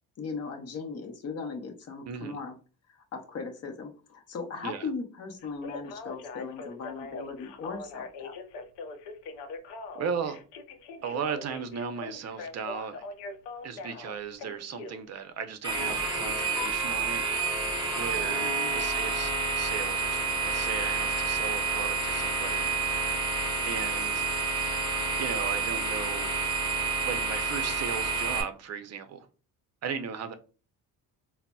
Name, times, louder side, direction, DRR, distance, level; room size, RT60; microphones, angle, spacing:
voice 1, 0.2-2.6 3.1-8.3 18.4-18.7, left 4 dB, 40° left, 0.7 m, -38 dB
voice 2, 2.1-2.4 4.6-4.9 9.9-10.4 11.0-13.0 13.6-17.2 17.9-23.0 23.6-24.2 25.2-26.3 27.1-29.3 29.8-30.3, right 6 dB, 40° right, 0.5 m, -36 dB
Telephone, 5.4-15.0 16.6-16.7, left 4 dB, 90° left, 0.6 m, -41 dB
sound 1, 15.6-28.4, right 4 dB, 10° right, 0.9 m, -29 dB
3.9 x 2.0 x 2.2 m
cardioid pair, 100°, 39 cm